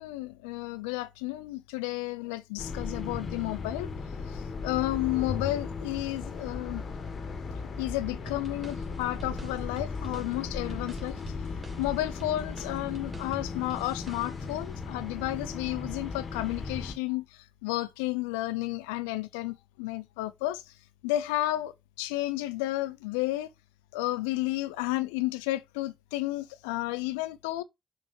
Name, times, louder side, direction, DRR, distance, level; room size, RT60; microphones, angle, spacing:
voice 1, 0.0-3.9 4.3-6.8 7.8-11.1 11.8-17.2 17.6-20.6 21.0-23.5 23.9-27.6, left 17 dB, 80° left, 0.5 m, -32 dB
sound 1, 2.6-16.9, left 4 dB, 50° left, 1.5 m, -37 dB
Dayvmen with Ride, 8.3-14.7, right 2 dB, 30° right, 2.8 m, -48 dB
6.4 x 3.0 x 5.4 m
hypercardioid pair, 45°, 0 cm